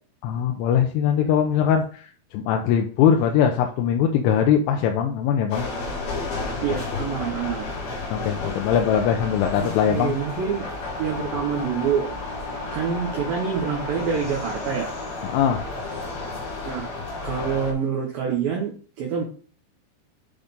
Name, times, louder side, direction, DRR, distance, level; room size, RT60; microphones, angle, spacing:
voice 1, 0.2-2.1 2.3-5.7 8.1-10.2 15.3-15.6, left 8 dB, 90° left, 3 dB, 3.2 m, -21 dB
sound 1, 5.5-17.7, left 3 dB, 60° left, 3.5 m, -32 dB
voice 2, 6.6-7.8 9.6-10.7 11.0-12.1 12.7-14.9 16.6-16.9 17.2-19.2, right 7 dB, 80° right, 0 dB, 2.0 m, -26 dB
8.7 x 3.9 x 3.6 m, 0.41 s
omnidirectional pair, 5.5 m